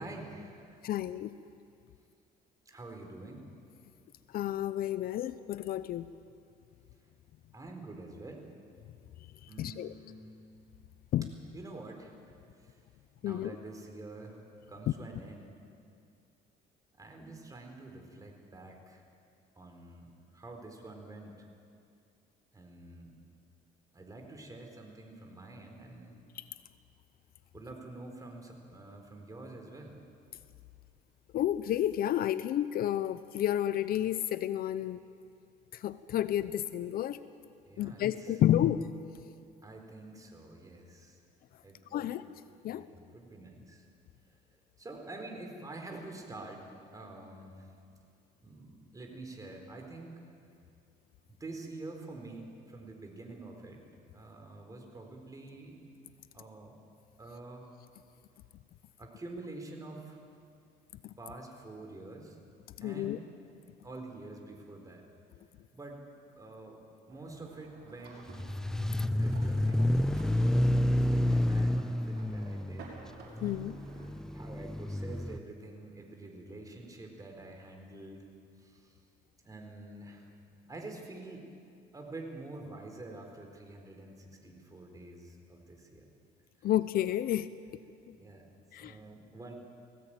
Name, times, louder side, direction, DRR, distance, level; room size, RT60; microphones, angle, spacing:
voice 1, 0.0-0.8 2.7-3.4 7.5-8.5 9.5-10.2 11.5-12.1 12.6-12.7 13.2-14.4 14.7-15.6 17.0-19.0 19.6-21.5 22.5-23.1 23.9-26.2 27.5-30.0 37.7-38.4 39.6-41.2 41.5-42.1 42.7-43.9 44.8-46.7 46.9-47.7 48.4-50.1 51.4-53.8 54.1-55.8 56.3-56.8 57.2-57.7 59.0-60.2 61.2-62.4 62.8-63.2 63.8-65.0 65.7-66.0 66.4-68.4 69.1-69.8 70.4-72.9 74.3-78.3 78.6-78.9 79.4-80.3 80.7-81.5 81.9-86.1 88.1-89.5, right 2 dB, 20° right, 2 dB, 4.1 m, -47 dB
voice 2, 0.8-1.3 4.3-6.1 9.6-9.9 11.1-11.3 13.2-13.5 26.4-26.5 31.3-35.0 35.8-37.2 37.8-38.9 41.9-42.2 42.6-42.9 61.0-61.1 62.8-63.2 73.4-73.8 86.6-87.5 88.1-88.2 88.7-88.9, left 12 dB, 60° left, 14 dB, 0.7 m, -30 dB
sound 1, 67.1-74.1, right 3 dB, 75° right, 6.1 m, -53 dB
sound 2, 68.3-75.4, left 1 dB, 5° left, 0.5 m, -29 dB
20.0 x 16.5 x 9.0 m, 2.5 s
cardioid pair, 110°, 17 cm